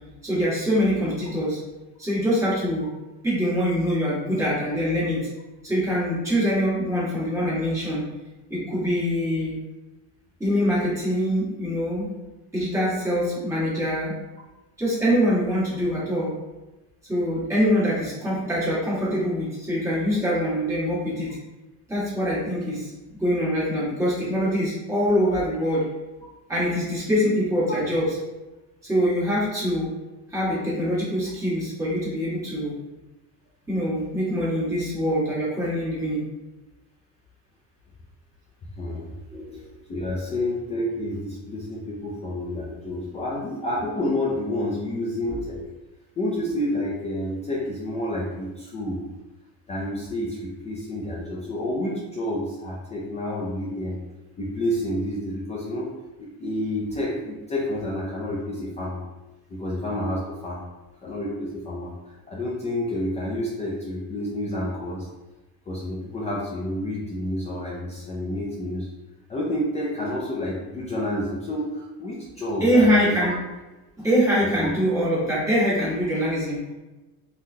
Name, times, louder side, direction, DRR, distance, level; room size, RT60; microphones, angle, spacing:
voice 1, 0.2-1.6 2.0-2.9 3.2-5.2 5.6-8.0 8.5-9.5 10.4-12.1 12.5-14.1 14.8-16.3 17.1-21.4 21.9-25.9 26.5-28.0 28.8-29.9 30.3-32.7 33.7-36.2 39.3-39.6 42.5-42.6 72.6-73.3 74.0-76.6, equal, 10° right, -10 dB, 1.4 m, -24 dB
voice 2, 38.8-39.1 39.9-45.6 46.2-49.0 49.7-54.0 54.4-55.9 56.2-59.0 59.5-60.6 61.0-65.1 65.7-68.9 69.3-73.1 74.6-74.7, left 1 dB, 20° left, -5 dB, 0.3 m, -29 dB
3.6 x 2.3 x 2.7 m, 1.1 s
cardioid pair, 150°, 35 cm